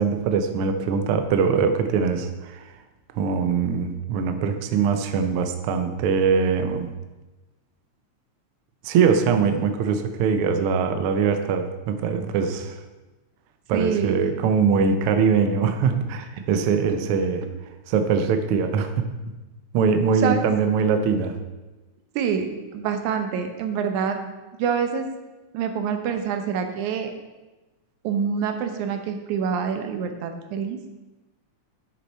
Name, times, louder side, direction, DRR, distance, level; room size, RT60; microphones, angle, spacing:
voice 1, 0.0-2.7 3.1-6.9 8.8-12.8 13.7-17.4 17.9-19.1 19.7-21.4, right 6 dB, 70° right, 7 dB, 1.4 m, -22 dB
voice 2, 13.7-14.2 20.2-20.5 22.2-22.5 22.7-24.2 24.6-25.1 25.5-27.1 28.0-30.8, right 7 dB, 90° right, 6 dB, 2.3 m, -26 dB
11.0 x 6.6 x 4.3 m, 1.1 s
omnidirectional pair, 3.3 m